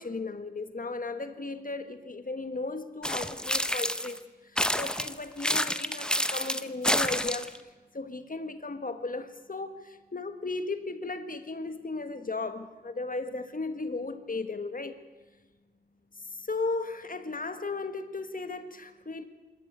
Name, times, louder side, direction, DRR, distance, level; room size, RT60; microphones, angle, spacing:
voice 1, 0.0-15.0 16.2-19.2, left 3 dB, 50° left, 9 dB, 1.5 m, -36 dB
sound 1, 3.0-4.2 4.6-7.6, equal, 5° left, 0.9 m, -28 dB
26.0 x 13.5 x 9.5 m, 1.3 s
wide cardioid pair, 70°, 18 cm